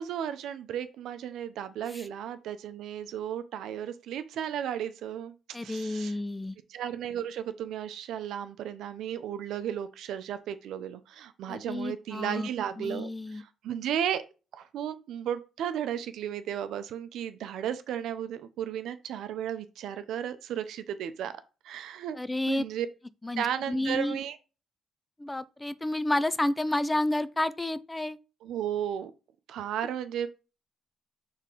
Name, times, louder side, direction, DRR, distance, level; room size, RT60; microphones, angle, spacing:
voice 1, 0.0-5.3 5.6-6.1 6.7-14.2 14.5-21.3 21.6-22.2 22.5-22.9 23.4-24.4 28.4-29.1 29.5-30.3, right 9 dB, 80° right, 0.7 m, -34 dB
voice 2, 5.5-6.6 11.5-12.5 12.8-13.4 22.1-22.7 23.2-24.2 25.2-28.2, left 1 dB, 15° left, 0.4 m, -30 dB
5.9 x 3.6 x 4.5 m
cardioid pair, 90°, 0 cm